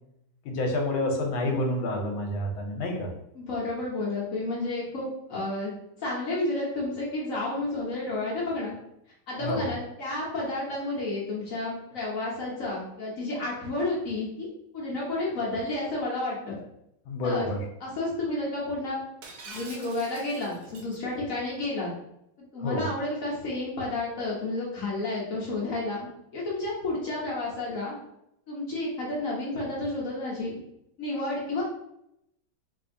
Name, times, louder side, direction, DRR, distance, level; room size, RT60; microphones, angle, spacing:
voice 1, 0.4-3.1 9.4-9.7 17.1-17.6 22.6-22.9, left 1 dB, 85° left, 2 dB, 1.5 m, -28 dB
voice 2, 3.3-8.7 9.3-14.5 14.7-16.6 17.2-17.4 17.8-19.0 19.5-21.9 22.5-27.9 28.5-30.6 31.0-31.6, left 2 dB, 50° left, -5 dB, 1.1 m, -31 dB
Shatter, 19.2-21.0, right 3 dB, 70° right, 1.3 m, -45 dB
4.3 x 2.7 x 2.6 m, 0.80 s
omnidirectional pair, 2.2 m